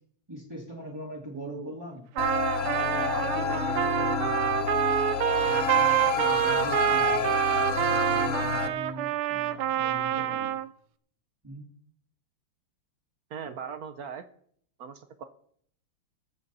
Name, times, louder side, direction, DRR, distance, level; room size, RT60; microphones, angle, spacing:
voice 1, 0.3-2.0 2.6-4.7 5.4-7.4 7.7-10.5 11.4-11.7, right 1 dB, 10° right, -4 dB, 2.2 m, -41 dB
voice 2, 1.3-1.8 13.3-14.2 14.8-15.2, right 7 dB, 60° right, 10 dB, 1.0 m, -39 dB
sound 1, 2.2-8.7, left 6 dB, 65° left, 0.7 m, -29 dB
Trumpet, 2.2-10.7, right 13 dB, 85° right, 1.6 m, -27 dB
20.5 x 8.1 x 4.1 m, 0.63 s
omnidirectional pair, 2.4 m